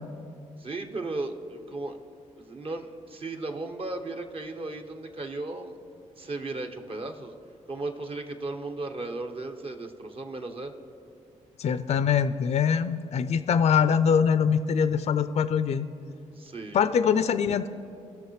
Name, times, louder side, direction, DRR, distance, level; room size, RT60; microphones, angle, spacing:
voice 1, 0.6-2.0 2.4-5.8 6.2-7.3 7.7-10.7 16.3-16.8, right 2 dB, 40° right, 4 dB, 1.1 m, -35 dB
voice 2, 11.6-15.9 16.7-17.7, left 7 dB, 50° left, 12 dB, 0.4 m, -23 dB
19.0 x 6.4 x 3.2 m, 2.5 s
supercardioid pair, 65°, 14 cm